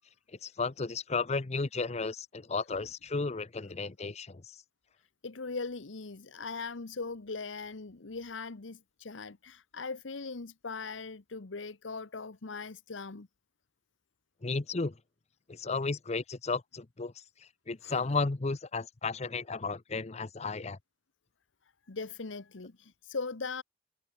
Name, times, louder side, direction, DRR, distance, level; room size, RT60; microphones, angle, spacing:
voice 1, 0.4-4.6 14.4-15.0 15.5-17.1 17.7-20.8, left 4 dB, 35° left, 0.7 m, -33 dB
voice 2, 5.2-13.3 17.8-18.1 21.9-23.6, left 4 dB, 85° left, 1.0 m, -40 dB
head